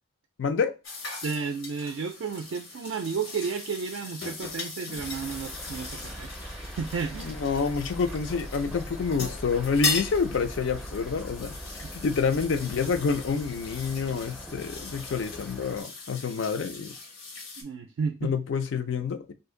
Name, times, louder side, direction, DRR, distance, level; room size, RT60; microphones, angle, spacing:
voice 1, 0.4-0.7 7.2-11.6 12.0-16.9 18.2-19.3, left 5 dB, 65° left, 0.4 m, -28 dB
sound 1, 0.8-17.6, left 3 dB, 90° left, 1.1 m, -38 dB
voice 2, 1.2-7.4 11.8-11.9 17.6-18.3, right 5 dB, 65° right, 0.3 m, -33 dB
sound 2, 5.0-15.8, equal, ahead, 0.4 m, -41 dB
2.6 x 2.4 x 3.7 m
head